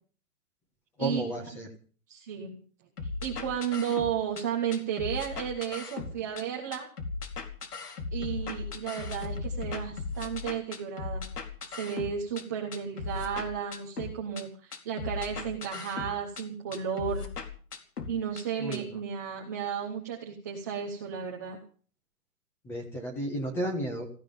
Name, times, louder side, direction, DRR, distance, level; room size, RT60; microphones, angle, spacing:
voice 1, 1.0-1.7 18.6-18.8 22.6-24.1, right 1 dB, 5° left, 5 dB, 1.3 m, -32 dB
voice 2, 2.1-2.6 3.0-6.9 8.1-11.3 11.7-17.3 18.1-21.6, right 8 dB, 10° right, -1 dB, 0.9 m, -33 dB
sound 1, 3.0-4.4 4.7-6.4 6.7-12.4 12.7-14.4 14.7-16.4 16.7-18.4 18.7-18.8, left 4 dB, 85° left, 4.4 m, -37 dB
17.0 x 16.0 x 5.4 m, 0.43 s
hypercardioid pair, 180°, 45 cm